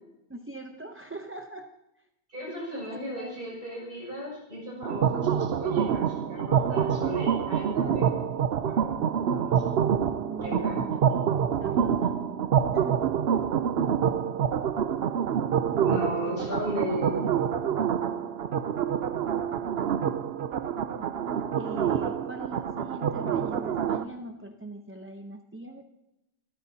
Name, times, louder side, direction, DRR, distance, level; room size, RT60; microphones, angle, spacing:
voice 1, 0.3-1.7 2.5-3.3 9.9-12.3 12.7-13.1 16.2-16.6 20.5-21.1 21.6-25.8, right 2 dB, 15° right, 4 dB, 0.5 m, -42 dB
voice 2, 2.3-8.2 8.7-8.8 9.2-9.6 10.4-10.8 15.8-17.2, equal, 40° right, -4 dB, 6.4 m, -35 dB
sound 1, 4.8-24.0, right 8 dB, 60° right, 0.8 m, -27 dB
27.5 x 13.5 x 2.8 m, 0.91 s
omnidirectional pair, 1.3 m